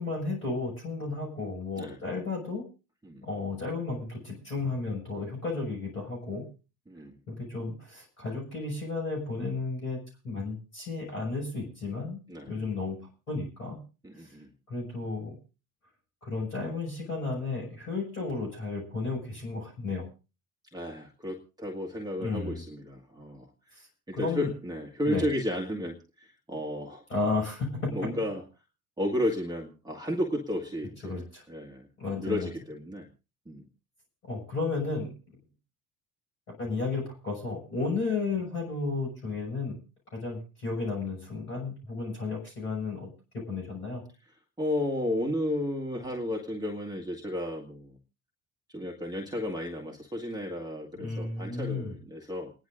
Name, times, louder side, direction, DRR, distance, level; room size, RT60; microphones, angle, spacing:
voice 1, 0.0-2.6 3.2-6.4 7.3-12.2 12.5-13.0 13.3-13.8 14.7-15.4 16.2-20.1 22.2-22.6 24.1-24.5 25.1-25.3 27.1-27.7 31.0-31.4 32.0-32.5 34.3-35.1 36.6-39.8 40.1-44.0 51.0-51.9, left 3 dB, 80° left, -2 dB, 6.4 m, -33 dB
voice 2, 6.9-7.2 12.3-12.5 14.0-14.5 20.7-23.5 24.1-27.0 27.9-28.4 29.0-31.2 31.5-31.9 32.2-33.1 33.5-33.7 44.6-48.0 48.7-52.5, left 1 dB, 10° right, -1 dB, 1.7 m, -33 dB
29.5 x 10.5 x 2.6 m, 0.32 s
figure-of-eight pair, 55°, 44 cm